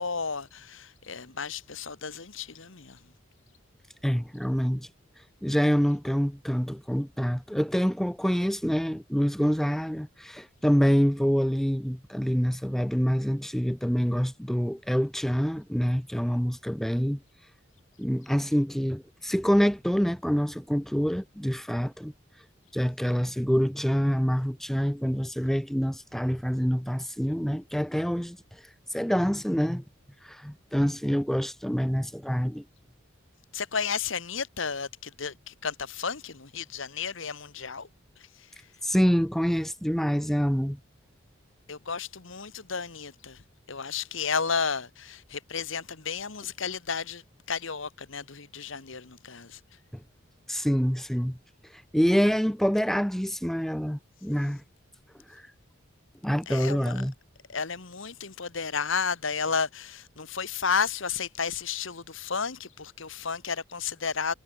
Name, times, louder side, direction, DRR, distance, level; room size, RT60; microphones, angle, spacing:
voice 1, 0.0-3.0 33.5-37.9 38.2-38.5 41.7-43.4 43.7-47.2 47.5-49.6 56.5-57.0 57.5-64.3, left 5 dB, 70° left, 1.5 m, -32 dB
voice 2, 4.0-4.9 5.4-17.2 18.0-22.1 22.7-28.4 28.9-29.8 30.2-32.6 38.8-40.8 50.5-51.4 51.9-54.6 55.3-55.4 56.2-57.1, equal, ahead, 0.6 m, -26 dB
head